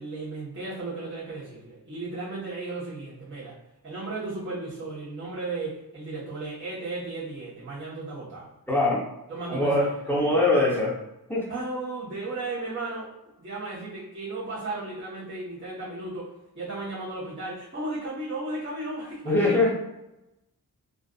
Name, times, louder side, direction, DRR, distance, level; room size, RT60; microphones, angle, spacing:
voice 1, 0.0-3.6 3.8-8.5 9.3-10.4 11.5-13.1 13.4-19.6, right 2 dB, 30° right, -12 dB, 1.0 m, -35 dB
voice 2, 8.7-9.0 9.5-11.0 11.3-11.5 19.2-19.7, left 2 dB, 5° left, -5 dB, 0.8 m, -22 dB
2.5 x 2.4 x 2.3 m, 0.92 s
wide cardioid pair, 70°, 38 cm